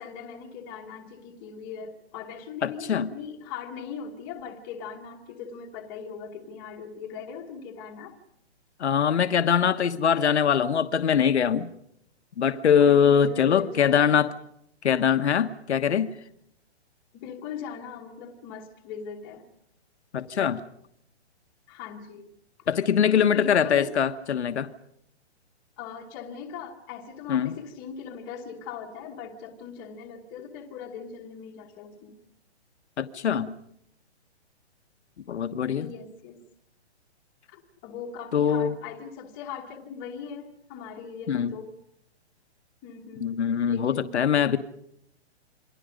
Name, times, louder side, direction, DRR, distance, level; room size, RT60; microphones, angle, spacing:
voice 1, 0.0-8.1 12.8-14.2 17.1-19.4 21.7-22.3 23.3-24.0 25.8-32.2 35.7-36.4 37.5-41.7 42.8-43.3 43.7-44.5, left 7 dB, 10° left, 1 dB, 1.2 m, -40 dB
voice 2, 2.6-3.1 8.8-11.7 12.4-14.3 14.8-16.2 20.1-20.6 22.7-24.7 27.3-27.5 33.0-33.6 35.3-35.9 38.3-38.7 41.3-41.5 43.2-44.6, left 8 dB, 75° left, 9 dB, 1.4 m, -22 dB
28.0 x 23.5 x 5.2 m, 0.76 s
hypercardioid pair, 180°, 33 cm